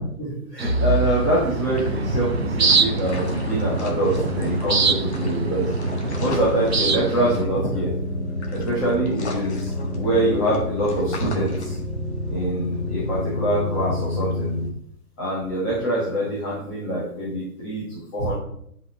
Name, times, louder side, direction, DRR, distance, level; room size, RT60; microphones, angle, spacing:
voice 1, 0.2-5.7 6.2-7.9 8.5-11.8 12.3-14.5 15.2-18.3, right 1 dB, 10° left, -9 dB, 1.4 m, -25 dB
Bowed string instrument, 0.6-5.2, right 4 dB, 25° left, 0.8 m, -30 dB
sound 1, 0.6-7.4, right 5 dB, 45° right, 0.5 m, -25 dB
sound 2, 1.8-14.7, left 1 dB, 45° left, 1.6 m, -28 dB
10.0 x 5.5 x 4.4 m, 0.71 s
hypercardioid pair, 175°, 46 cm